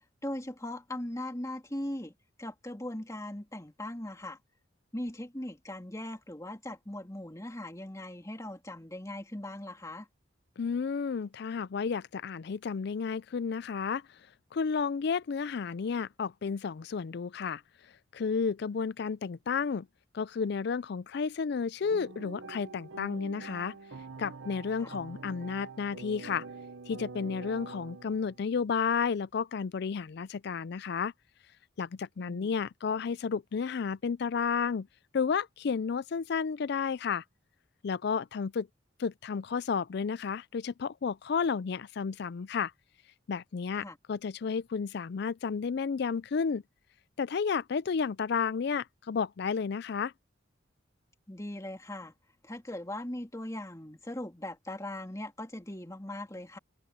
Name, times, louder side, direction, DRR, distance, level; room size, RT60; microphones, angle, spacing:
voice 1, 0.2-2.1 2.4-4.4 4.9-10.1 24.8-24.9 32.2-32.5 43.8-44.0 51.3-52.1 52.4-56.6, left 1 dB, 15° left, 2.5 m, -39 dB
voice 2, 10.6-14.0 14.5-17.6 18.1-19.9 20.1-23.8 24.2-26.5 26.9-31.1 31.8-34.9 35.1-37.2 37.8-38.7 39.0-42.7 43.3-46.6 47.2-50.1, left 6 dB, 60° left, 0.4 m, -32 dB
sound 1, 21.8-28.5, right 4 dB, 90° right, 1.0 m, -45 dB
head